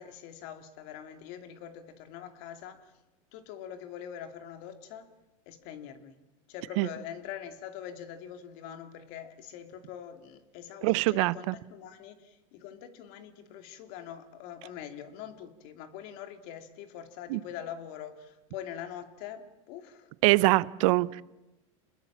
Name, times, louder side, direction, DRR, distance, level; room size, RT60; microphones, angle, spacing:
voice 1, 0.0-2.9 3.3-5.1 5.5-6.2 6.5-20.1 20.8-21.0, left 9 dB, 60° left, 2.8 m, -44 dB
voice 2, 10.8-11.5 17.3-17.4 20.2-21.2, right 21 dB, 65° right, 0.8 m, -24 dB
28.0 x 20.5 x 7.4 m
supercardioid pair, 110°, 18 cm